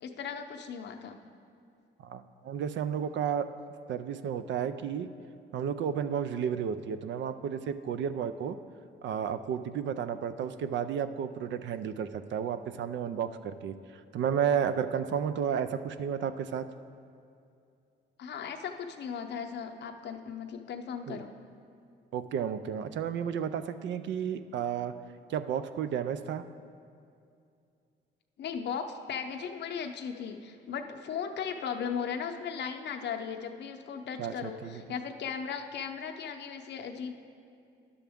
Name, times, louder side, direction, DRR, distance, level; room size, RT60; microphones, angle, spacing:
voice 1, 0.0-1.2 18.2-21.3 28.4-37.1, left 7 dB, 60° left, 5 dB, 0.6 m, -37 dB
voice 2, 2.0-3.5 3.9-5.1 5.5-8.6 9.0-13.7 14.1-16.7 21.1-21.2 22.1-24.9 25.3-26.4 34.2-34.8, right 8 dB, 65° right, 11 dB, 0.4 m, -32 dB
10.0 x 7.0 x 3.5 m, 2.4 s
cardioid pair, 90°, 20 cm